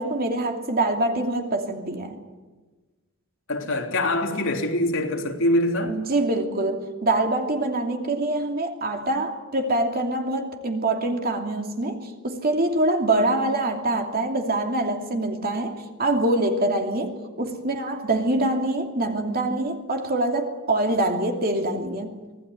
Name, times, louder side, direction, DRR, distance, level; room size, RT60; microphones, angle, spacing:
voice 1, 0.0-2.2 5.8-22.1, right 2 dB, 45° right, 2.8 m, -25 dB
voice 2, 3.5-6.0, left 1 dB, 65° left, 3.4 m, -24 dB
25.0 x 17.0 x 9.8 m
head